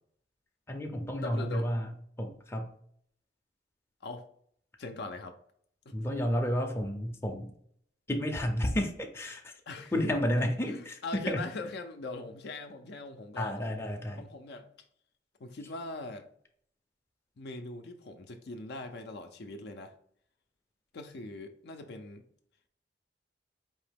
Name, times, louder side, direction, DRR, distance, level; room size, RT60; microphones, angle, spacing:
voice 1, 0.7-1.9 2.2-2.7 5.9-7.5 8.1-9.5 9.9-11.4 13.4-14.3, equal, 15° left, 2 dB, 0.5 m, -31 dB
voice 2, 1.2-1.7 4.0-4.2 4.8-5.4 5.9-6.0 9.7-10.1 10.7-13.6 14.2-14.7 15.4-16.3 17.4-19.9 20.9-22.2, left 2 dB, 60° left, 5 dB, 0.5 m, -41 dB
4.5 x 2.8 x 3.4 m, 0.64 s
head